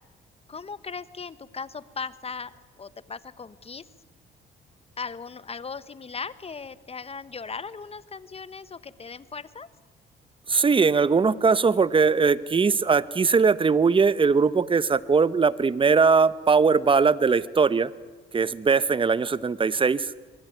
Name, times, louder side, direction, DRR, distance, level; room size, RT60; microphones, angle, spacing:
voice 1, 0.5-3.8 5.0-9.7, left 5 dB, 30° left, 16 dB, 1.1 m, -38 dB
voice 2, 10.5-17.9 18.3-20.1, right 5 dB, 25° right, 17 dB, 0.9 m, -20 dB
23.5 x 23.0 x 9.3 m, 1.4 s
cardioid pair, 90°, 20 cm